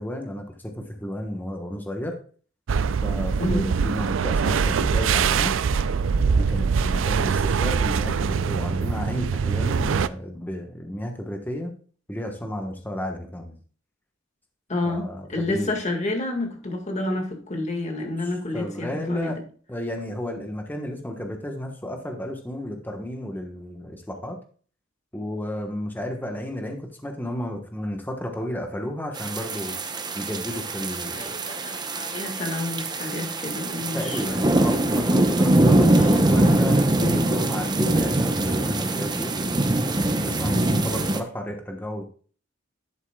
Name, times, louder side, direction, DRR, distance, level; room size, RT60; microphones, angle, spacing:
voice 1, 0.0-2.2 3.0-5.5 6.2-11.7 12.1-13.5 14.8-15.7 18.2-19.4 19.7-24.4 25.1-29.7 30.1-31.3 33.9-39.3 40.2-42.0, equal, 10° left, 1.2 m, -32 dB
sound 1, 2.7-10.1, right 6 dB, 75° right, 0.4 m, -23 dB
voice 2, 3.4-3.7 14.7-19.3 31.1-34.6 35.7-36.3 37.0-37.3, left 2 dB, 35° left, 1.9 m, -29 dB
sound 2, 29.2-41.2, right 1 dB, 20° right, 0.8 m, -22 dB
11.0 x 8.1 x 2.3 m
head